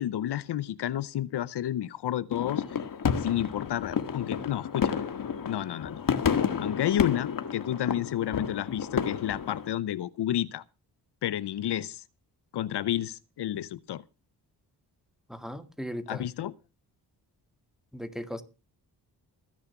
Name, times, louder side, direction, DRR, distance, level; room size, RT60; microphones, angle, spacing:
voice 1, 0.0-2.8 3.2-5.0 5.5-6.0 6.6-10.6 11.2-12.0 12.5-14.0 16.1-16.5, left 11 dB, 80° left, 0.8 m, -31 dB
sound 1, 2.3-9.7, left 7 dB, 55° left, 1.7 m, -30 dB
voice 2, 15.3-16.2 17.9-18.4, equal, ahead, 2.0 m, -37 dB
14.5 x 10.5 x 5.8 m
cardioid pair, 95°, 40 cm